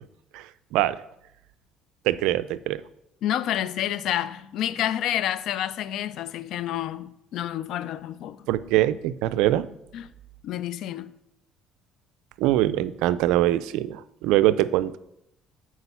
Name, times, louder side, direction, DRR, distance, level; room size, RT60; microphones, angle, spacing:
voice 1, 0.3-1.0 2.0-2.8 8.5-9.7 12.4-15.0, right 14 dB, 85° right, 0.4 m, -23 dB
voice 2, 3.2-8.5 9.9-10.1 10.4-11.1, left 11 dB, 70° left, 0.4 m, -29 dB
8.2 x 4.8 x 5.5 m
cardioid pair, 100°, 0 cm